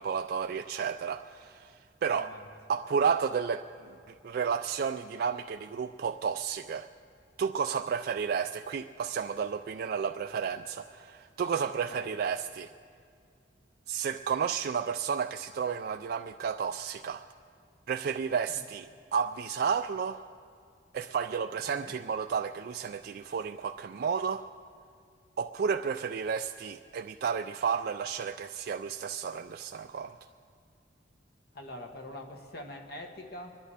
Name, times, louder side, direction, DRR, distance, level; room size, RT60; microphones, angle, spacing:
voice 1, 0.0-2.3 2.7-3.9 4.2-6.9 7.4-12.7 13.9-17.2 17.9-20.2 20.9-24.4 25.4-30.1, right 6 dB, 55° right, 7 dB, 0.3 m, -32 dB
voice 2, 31.5-33.5, left 1 dB, 60° left, 3 dB, 1.6 m, -44 dB
25.0 x 11.0 x 4.9 m, 2.3 s
head